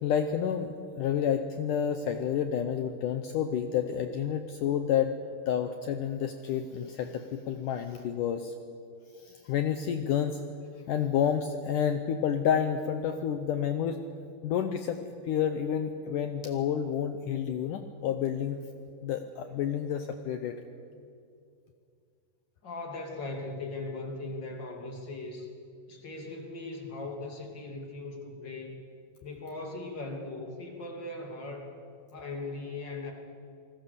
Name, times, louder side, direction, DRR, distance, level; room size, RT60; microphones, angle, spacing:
voice 1, 0.0-5.1 5.5-8.5 9.2-10.4 10.9-14.0 14.4-18.6 19.0-20.6, left 8 dB, 75° left, 7 dB, 2.0 m, -29 dB
voice 2, 22.6-25.5 25.9-28.8 29.2-31.8 32.1-33.1, left 2 dB, 30° left, 2 dB, 2.9 m, -39 dB
27.0 x 20.0 x 6.8 m, 2.4 s
omnidirectional pair, 4.6 m